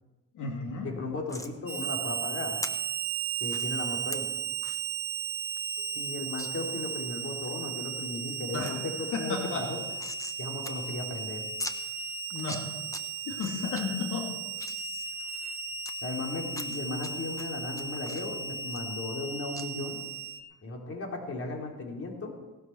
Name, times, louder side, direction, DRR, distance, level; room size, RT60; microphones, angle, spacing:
voice 1, 0.3-0.9 5.8-5.9 8.5-8.8 9.1-9.7 12.3-12.7 13.2-14.3, left 5 dB, 75° left, 0 dB, 2.9 m, -33 dB
voice 2, 0.8-2.6 3.4-4.3 5.9-8.9 9.2-9.8 10.4-11.5 16.0-20.0 20.6-22.3, left 2 dB, 50° left, 1 dB, 3.5 m, -36 dB
sound 1, 1.3-1.5 2.6-2.7 3.5-3.7 4.1-4.2 4.6-4.8 5.2-5.3 5.6-5.7 6.4-6.5 7.0-7.5 8.0-8.4 8.7-8.8 9.0-10.4 10.6-10.7 11.0-11.1 11.6-11.8 12.3-13.0 13.4-13.8 14.3-15.9 16.5-17.1 17.4-19.3 19.5-19.7, left 1 dB, 10° left, 1.2 m, -40 dB
Harmonica, 1.7-20.4, right 6 dB, 70° right, 1.1 m, -35 dB
18.0 x 12.0 x 4.7 m, 1.1 s
cardioid pair, 90°, 30 cm